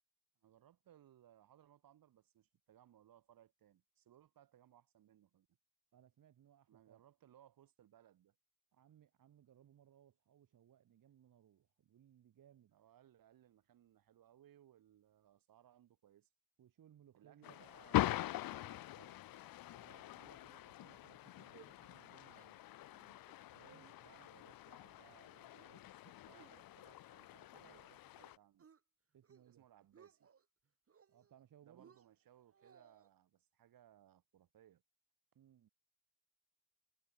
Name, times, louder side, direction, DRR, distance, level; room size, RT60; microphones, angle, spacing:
voice 1, 0.4-5.5 6.7-8.4 12.7-16.3 17.1-19.2 24.0-28.7 29.5-30.3 31.6-34.8, right 11 dB, 85° right, 3.8 m, -66 dB
voice 2, 5.9-7.0 8.7-12.7 16.6-18.6 19.8-22.7 23.5-23.9 29.1-29.6 31.1-31.9 35.3-35.7, right 10 dB, 65° right, 2.5 m, -66 dB
sound 1, 17.4-28.4, left 15 dB, 85° left, 0.7 m, -43 dB
sound 2, 19.3-19.9 20.1-20.2 20.6-20.9 21.3-21.7 22.0-22.5 22.9-23.3 23.7-24.3 24.7-25.2 25.5-25.9 26.3-27.8 28.2-28.8 29.2-29.5 29.8-30.4 30.9-31.4 31.8-33.1, right 6 dB, 40° right, 5.0 m, -66 dB
wide cardioid pair, 160°, 34 cm